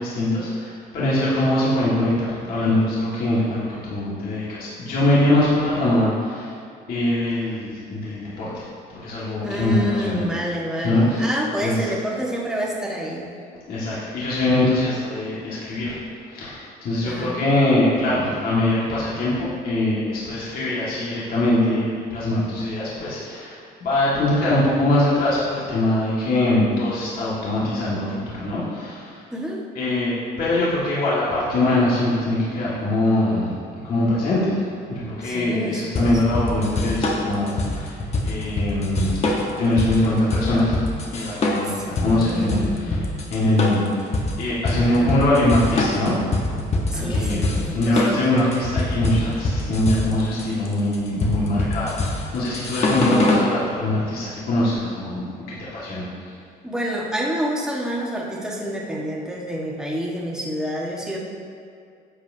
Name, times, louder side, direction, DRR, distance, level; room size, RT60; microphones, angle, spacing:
voice 1, 0.0-6.6 6.9-10.2 10.8-11.3 11.6-11.9 13.7-16.0 16.3-29.3 29.8-33.6 33.8-38.0 38.2-39.2 39.6-40.8 41.1-44.1 44.4-46.2 46.9-56.3, left 1 dB, 60° left, -8 dB, 1.9 m, -22 dB
voice 2, 9.4-13.3 17.0-17.4 29.3-29.7 35.2-36.1 41.6-43.2 44.7-45.2 46.9-48.2 56.6-61.2, equal, 5° right, -4 dB, 1.4 m, -28 dB
sound 1, 36.0-53.5, left 2 dB, 40° left, 1.2 m, -24 dB
11.0 x 7.3 x 2.8 m, 2.3 s
cardioid pair, 110°, 17 cm